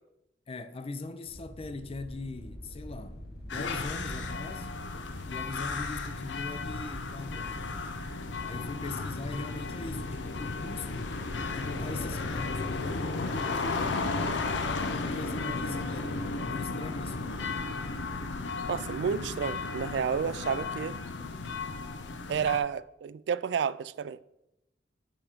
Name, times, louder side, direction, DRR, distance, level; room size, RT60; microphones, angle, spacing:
voice 1, 0.5-4.7 5.3-8.0 8.4-11.1 11.5-17.4, left 2 dB, 35° left, 0.4 m, -41 dB
sound 1, 1.2-20.0, equal, 65° left, 1.3 m, -45 dB
sound 2, 3.5-22.6, left 3 dB, 85° left, 0.6 m, -34 dB
voice 2, 18.7-21.0 22.3-24.2, right 7 dB, 70° right, 0.3 m, -30 dB
8.9 x 3.6 x 5.0 m
head